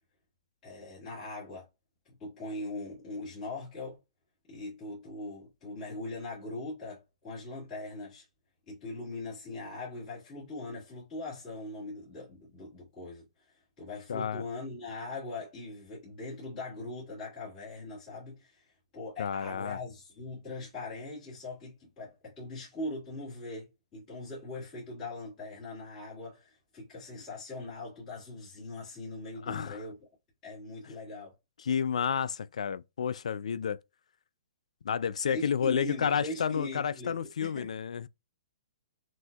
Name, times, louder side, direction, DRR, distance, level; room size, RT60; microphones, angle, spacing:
voice 1, 0.6-1.7 2.0-4.0 4.5-8.3 8.7-30.1 30.4-31.3 35.3-37.7, left 2 dB, 15° left, 2.0 m, -41 dB
voice 2, 14.1-14.4 19.2-19.8 29.4-29.8 31.6-33.8 34.8-38.1, left 7 dB, 80° left, 0.4 m, -31 dB
6.0 x 2.6 x 2.3 m
hypercardioid pair, 175°, 4 cm